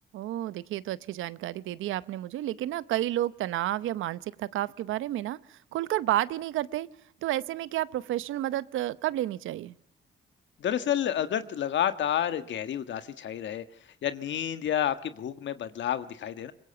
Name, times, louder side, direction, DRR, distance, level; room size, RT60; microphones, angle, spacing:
voice 1, 0.1-5.4 5.7-6.9 7.2-9.7, right 14 dB, 85° right, 17 dB, 0.9 m, -31 dB
voice 2, 10.6-13.6 14.0-16.5, left 10 dB, 65° left, 11 dB, 1.5 m, -30 dB
24.0 x 21.5 x 7.0 m, 0.62 s
cardioid pair, 90°, 20 cm